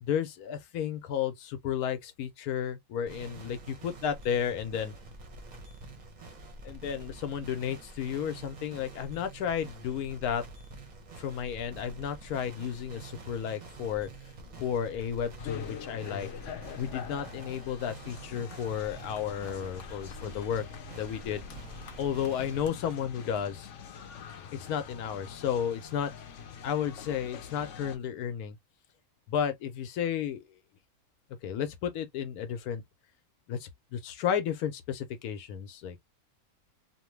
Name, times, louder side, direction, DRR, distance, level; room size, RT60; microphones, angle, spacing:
voice 1, 0.0-4.9 6.6-10.4 11.2-14.1 14.6-16.3 16.8-20.6 21.0-21.4 22.0-23.7 24.5-26.1 26.6-28.6 29.3-30.4 31.4-32.8 33.5-36.0, left 8 dB, 80° left, 1.1 m, -33 dB
sound 1, 3.1-22.7, right 2 dB, 40° right, 0.6 m, -47 dB
sound 2, 15.4-28.0, left 7 dB, 60° left, 0.9 m, -44 dB
3.0 x 2.2 x 3.1 m
omnidirectional pair, 1.6 m